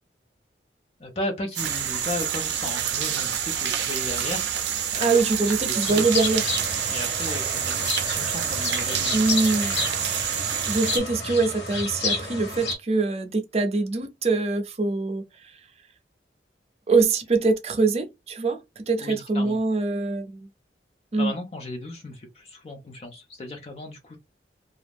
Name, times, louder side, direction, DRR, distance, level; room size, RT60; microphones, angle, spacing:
voice 1, 1.0-6.0 6.8-9.3 9.6-10.2 19.0-19.6 21.2-24.2, left 1 dB, 35° left, 0.4 m, -36 dB
sound 1, 1.5-11.0, right 9 dB, 85° right, 0.5 m, -27 dB
voice 2, 5.0-7.0 9.1-9.8 10.7-15.2 16.9-20.5 21.1-21.3, right 3 dB, 35° right, 0.5 m, -24 dB
sound 2, 5.8-12.8, left 3 dB, 85° left, 0.9 m, -31 dB
2.4 x 2.0 x 3.3 m
head